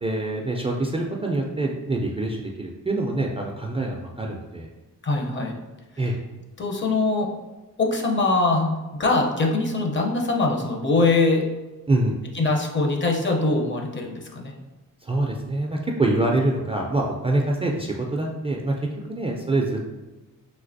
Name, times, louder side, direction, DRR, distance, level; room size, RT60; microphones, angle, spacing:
voice 1, 0.0-4.7 6.0-6.2 11.9-12.2 15.0-18.8 19.1-19.9, right 2 dB, 20° right, -1 dB, 0.3 m, -25 dB
voice 2, 5.0-5.5 6.6-7.3 7.8-11.4 12.3-14.5, left 3 dB, 35° left, 1 dB, 0.6 m, -22 dB
3.2 x 2.8 x 2.6 m, 1.1 s
cardioid pair, 75°, 33 cm